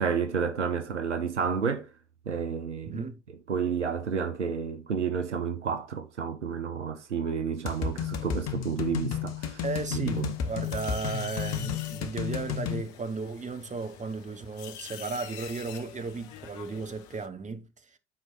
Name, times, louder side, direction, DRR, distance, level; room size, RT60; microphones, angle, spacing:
voice 1, 0.0-1.9 2.3-3.0 3.5-9.6 9.9-10.4, right 6 dB, 90° right, 0.7 m, -30 dB
voice 2, 2.8-3.2 9.6-18.0, right 4 dB, 20° right, 1.1 m, -35 dB
sound 1, 7.7-12.8, left 8 dB, 50° left, 1.4 m, -32 dB
sound 2, 10.1-17.3, left 10 dB, 70° left, 0.9 m, -46 dB
13.0 x 4.6 x 2.5 m
figure-of-eight pair, 60°, 35 cm